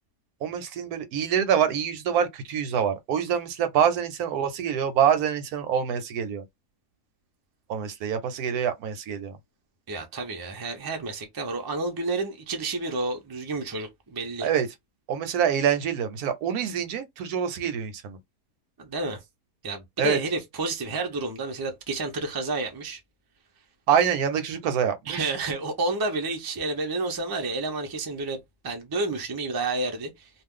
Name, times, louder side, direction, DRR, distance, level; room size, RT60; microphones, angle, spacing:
voice 1, 0.4-6.4 7.7-9.4 14.4-14.7 15.1-18.2 20.0-20.2 23.9-25.3, right 8 dB, 75° right, 1.1 m, -25 dB
voice 2, 9.9-14.5 18.8-19.2 19.6-23.0 25.1-30.3, right 2 dB, 30° right, 0.4 m, -30 dB
2.4 x 2.4 x 3.6 m
omnidirectional pair, 1.7 m